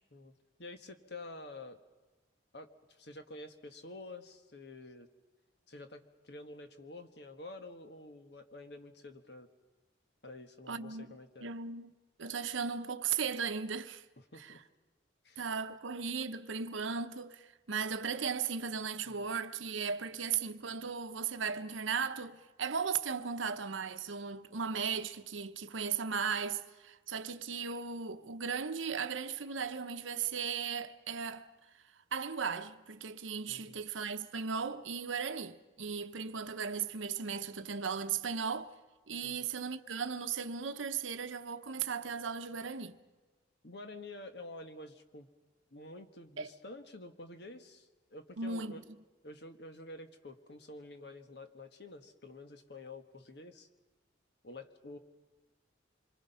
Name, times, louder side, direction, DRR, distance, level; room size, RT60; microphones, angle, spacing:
voice 1, 0.6-1.8 2.5-5.1 5.7-9.5 10.2-11.5 14.3-14.6 15.2-15.4 19.0-19.1 33.5-33.8 39.2-39.5 43.6-45.3 45.7-48.8 49.2-53.7 54.4-55.0, left 2 dB, 60° left, 1.4 m, -49 dB
voice 2, 10.7-11.1 11.4-14.0 14.4-14.5 15.4-31.5 32.1-38.7 39.1-43.0 46.4-46.5 48.4-48.8, right 6 dB, 85° right, 0.9 m, -37 dB
26.5 x 23.5 x 5.6 m
head